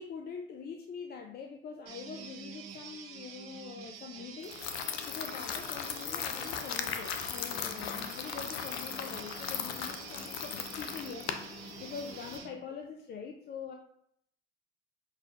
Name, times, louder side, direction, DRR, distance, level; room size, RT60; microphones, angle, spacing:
voice 1, 0.0-11.3 11.8-13.7, left 6 dB, 35° left, 3 dB, 0.4 m, -44 dB
sound 1, 1.9-12.5, right 6 dB, 75° right, 0.8 m, -47 dB
sound 2, 4.4-12.4, left 8 dB, 90° left, 0.5 m, -38 dB
5.7 x 2.6 x 2.5 m, 0.70 s
hypercardioid pair, 70°, 29 cm